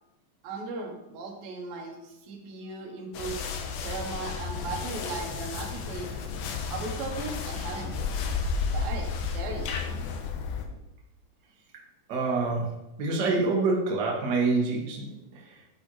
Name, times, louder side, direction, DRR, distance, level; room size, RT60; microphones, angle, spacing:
voice 1, 0.4-3.4 3.8-6.1 6.7-8.0 8.7-9.8, right 4 dB, 85° right, 2 dB, 2.8 m, -37 dB
sound 1, 3.1-10.7, left 5 dB, 80° left, 2.4 m, -32 dB
voice 2, 12.1-12.7 13.0-15.0, right 3 dB, 55° right, -2 dB, 1.1 m, -26 dB
10.5 x 4.3 x 3.1 m, 0.92 s
omnidirectional pair, 4.1 m